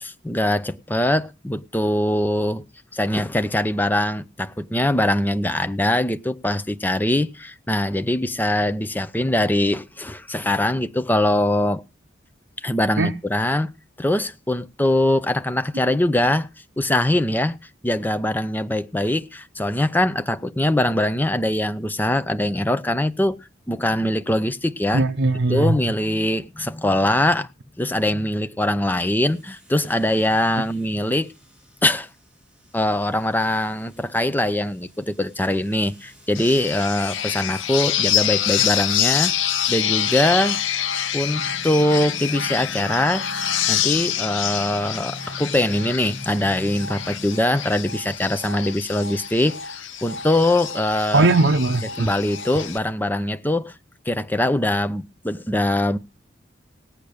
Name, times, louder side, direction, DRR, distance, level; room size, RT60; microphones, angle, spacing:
voice 1, 0.0-2.7 2.9-11.8 12.6-13.7 14.0-16.5 16.8-17.6 17.8-23.4 23.7-25.1 25.5-27.5 27.8-31.3 31.8-32.1 32.7-39.3 39.7-40.6 41.1-43.3 43.7-49.6 50.0-51.3 52.0-53.7 54.1-56.0, left 1 dB, 10° left, 0.7 m, -22 dB
voice 2, 24.9-25.8 51.1-52.1, right 2 dB, 65° right, 0.7 m, -19 dB
sound 1, 28.8-47.9, left 1 dB, 5° right, 2.9 m, -44 dB
sound 2, 36.3-52.8, left 10 dB, 85° left, 0.8 m, -26 dB
18.0 x 8.7 x 6.5 m
head